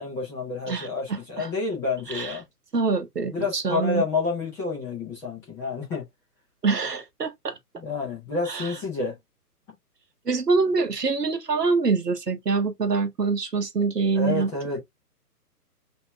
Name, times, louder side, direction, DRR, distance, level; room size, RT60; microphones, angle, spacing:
voice 1, 0.0-2.4 3.3-6.0 7.8-9.1 14.1-14.8, left 3 dB, 5° left, 0.8 m, -29 dB
voice 2, 0.7-1.5 2.1-2.4 2.7-4.0 6.6-7.5 8.5-8.7 10.3-14.5, right 4 dB, 80° right, 1.1 m, -25 dB
5.4 x 2.9 x 2.3 m
figure-of-eight pair, 135°, 48 cm